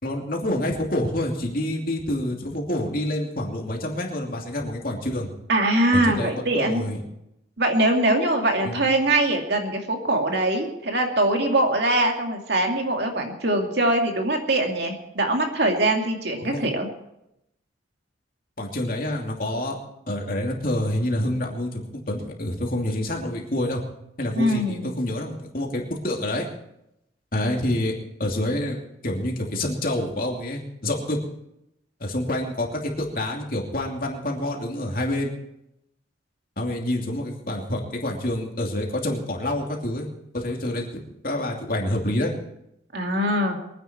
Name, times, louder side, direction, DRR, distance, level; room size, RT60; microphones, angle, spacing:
voice 1, 0.0-5.3 5.9-7.0 8.6-8.8 16.4-16.7 18.6-19.8 20.1-23.8 24.2-26.5 27.3-27.9 28.2-31.2 32.0-35.3 36.6-40.1 40.3-42.3, left 1 dB, 45° left, 0 dB, 2.8 m, -27 dB
voice 2, 5.5-6.8 7.6-16.9 24.3-24.9 42.9-43.6, right 1 dB, 55° right, 2 dB, 2.5 m, -22 dB
23.5 x 10.0 x 4.5 m, 0.82 s
head